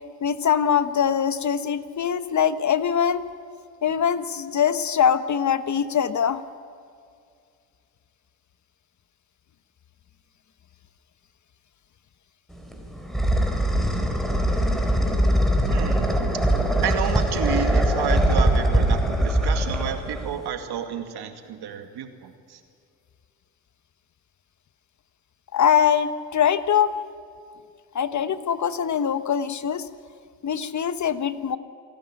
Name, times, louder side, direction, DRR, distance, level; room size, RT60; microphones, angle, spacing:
voice 1, 0.2-3.2 3.8-6.4 25.5-27.0 27.9-29.8 30.4-31.6, left 8 dB, 40° left, 13 dB, 1.2 m, -22 dB
sound 1, 12.5-20.5, right 1 dB, ahead, 4.2 m, -22 dB
voice 2, 15.6-16.1 16.8-22.6, right 8 dB, 60° right, 7 dB, 2.3 m, -31 dB
27.0 x 11.5 x 10.0 m, 2.3 s
supercardioid pair, 65°, 43 cm